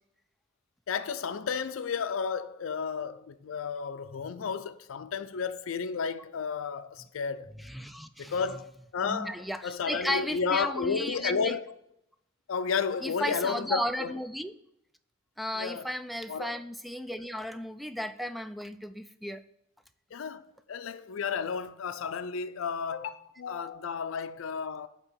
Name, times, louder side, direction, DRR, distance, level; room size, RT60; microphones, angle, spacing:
voice 1, 0.9-7.5 8.2-9.4 9.6-11.6 12.5-14.1 15.5-15.9 16.3-16.5 20.1-24.9, left 6 dB, 75° left, 0.4 m, -32 dB
voice 2, 7.6-8.6 9.0-11.6 13.0-14.5 15.4-19.4, equal, ahead, 0.3 m, -34 dB
8.0 x 2.9 x 5.6 m
head